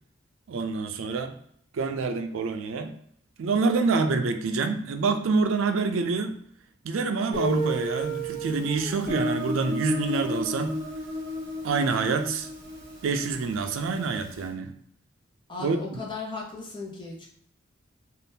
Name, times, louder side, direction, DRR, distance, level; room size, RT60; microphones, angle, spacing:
voice 1, 0.5-1.4 1.7-2.9 3.4-6.3 6.8-10.8 11.6-12.5 13.0-14.7 15.6-16.0, right 4 dB, 80° right, 7 dB, 0.4 m, -26 dB
Guitar, 7.3-14.0, right 1 dB, 55° right, 1.1 m, -32 dB
voice 2, 15.5-17.3, left 3 dB, 25° left, -3 dB, 0.8 m, -36 dB
3.5 x 2.4 x 2.7 m, 0.66 s
head